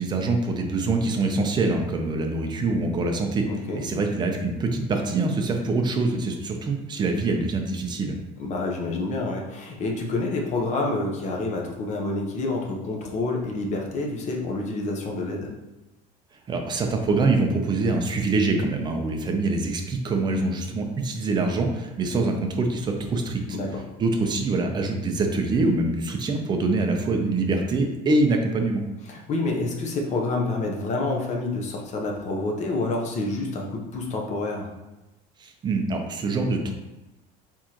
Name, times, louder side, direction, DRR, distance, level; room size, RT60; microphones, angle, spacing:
voice 1, 0.0-8.2 16.5-23.6 24.0-28.8 35.4-36.7, right 3 dB, 20° right, 3 dB, 0.5 m, -24 dB
voice 2, 3.5-3.8 8.4-15.5 23.5-23.8 29.1-34.7, left 2 dB, 35° left, 1 dB, 0.8 m, -28 dB
4.7 x 3.7 x 2.9 m, 1.0 s
cardioid pair, 160°, 20 cm